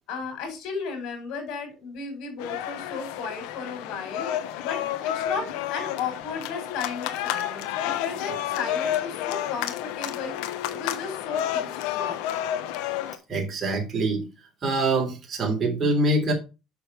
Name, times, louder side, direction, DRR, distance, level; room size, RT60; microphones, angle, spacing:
voice 1, 0.1-12.2, left 5 dB, 70° left, 5.2 m, -35 dB
sound 1, 2.4-13.2, left 11 dB, 85° left, 1.1 m, -30 dB
voice 2, 13.3-14.3 14.6-16.3, right 2 dB, 35° right, 3.3 m, -24 dB
6.9 x 6.4 x 4.6 m
cardioid pair, 110°, 0 cm